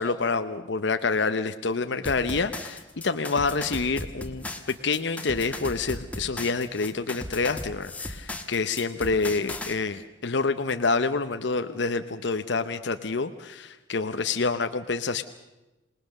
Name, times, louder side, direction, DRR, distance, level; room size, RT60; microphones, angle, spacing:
voice 1, 0.0-15.2, left 4 dB, 60° left, 9 dB, 0.8 m, -27 dB
sound 1, 2.0-9.7, left 1 dB, 5° left, 1.5 m, -37 dB
27.5 x 19.5 x 6.6 m, 1.1 s
head